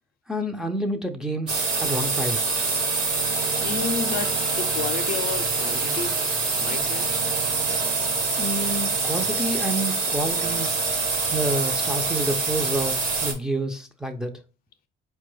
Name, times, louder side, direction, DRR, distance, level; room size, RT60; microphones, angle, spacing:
voice 1, 0.3-2.6 8.4-10.8 11.3-14.3, right 1 dB, 5° right, 0.4 m, -29 dB
sound 1, 1.5-13.3, right 4 dB, 55° right, 1.2 m, -25 dB
voice 2, 3.6-6.2 6.5-7.2, left 7 dB, 60° left, 0.5 m, -32 dB
4.5 x 2.2 x 3.0 m
cardioid pair, 110°, 17 cm